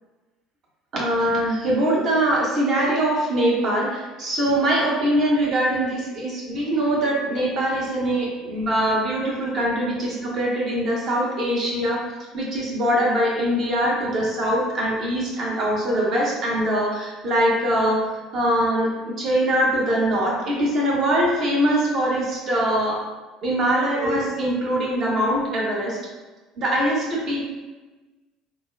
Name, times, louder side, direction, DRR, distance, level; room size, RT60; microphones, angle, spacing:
voice 1, 0.9-12.0 12.3-18.0 18.3-23.0 23.4-26.0 26.6-27.5, right 1 dB, 50° right, -3 dB, 1.0 m, -22 dB
3.9 x 2.1 x 2.4 m, 1.2 s
hypercardioid pair, 65°, 0 cm